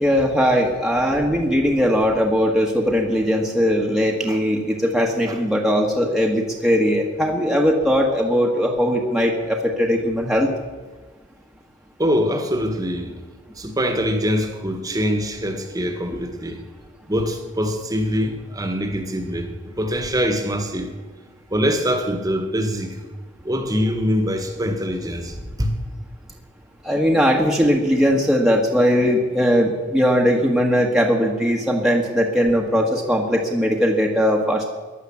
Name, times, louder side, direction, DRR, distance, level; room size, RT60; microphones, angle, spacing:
voice 1, 0.0-10.5 26.8-34.6, equal, ahead, -1 dB, 1.5 m, -19 dB
voice 2, 12.0-13.1 13.6-16.6 17.1-20.9 21.5-23.0 23.4-25.7, equal, 20° right, 5 dB, 1.6 m, -24 dB
15.0 x 11.0 x 7.2 m, 1.3 s
head